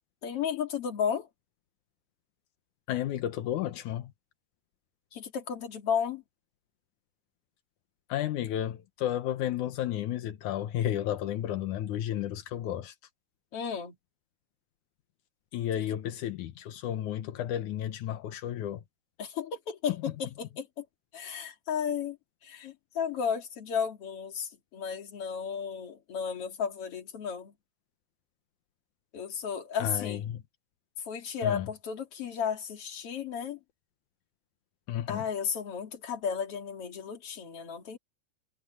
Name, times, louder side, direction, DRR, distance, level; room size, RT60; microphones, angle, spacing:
voice 1, 0.2-1.3 5.1-6.2 13.5-13.9 15.8-15.9 19.2-20.8 21.1-22.2 22.4-27.5 29.1-30.2 31.1-33.6 35.1-38.0, left 7 dB, 50° left, 3.2 m, -33 dB
voice 2, 2.9-4.1 8.1-12.9 15.5-18.8 29.8-30.4 31.4-31.7 34.9-35.2, left 11 dB, 80° left, 2.5 m, -32 dB
omnidirectional pair, 3.4 m